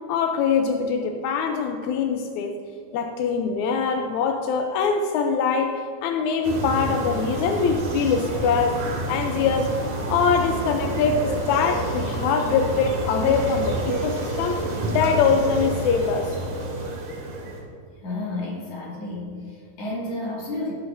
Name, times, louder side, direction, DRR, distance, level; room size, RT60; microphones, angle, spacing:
voice 1, 0.1-2.5 2.9-8.8 9.1-9.7 10.1-14.6 14.9-16.4, left 5 dB, 80° left, 4 dB, 1.7 m, -23 dB
sound 1, 6.4-17.6, right 2 dB, 65° right, 3.2 m, -29 dB
voice 2, 18.0-20.7, left 2 dB, 50° left, -5 dB, 3.2 m, -31 dB
17.5 x 7.9 x 2.6 m, 2.3 s
omnidirectional pair, 3.9 m